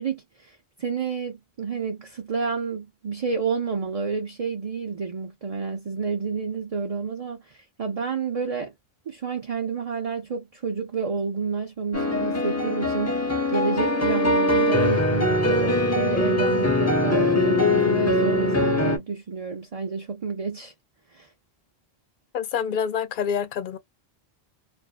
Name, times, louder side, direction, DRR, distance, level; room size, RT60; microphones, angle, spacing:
voice 1, 0.0-8.7 9.1-20.7 21.1-21.3, right 5 dB, 40° right, 0.7 m, -30 dB
sound 1, 11.9-19.0, left 1 dB, 20° left, 0.5 m, -22 dB
voice 2, 22.3-23.8, left 7 dB, 60° left, 0.6 m, -27 dB
2.5 x 2.5 x 2.2 m
omnidirectional pair, 1.1 m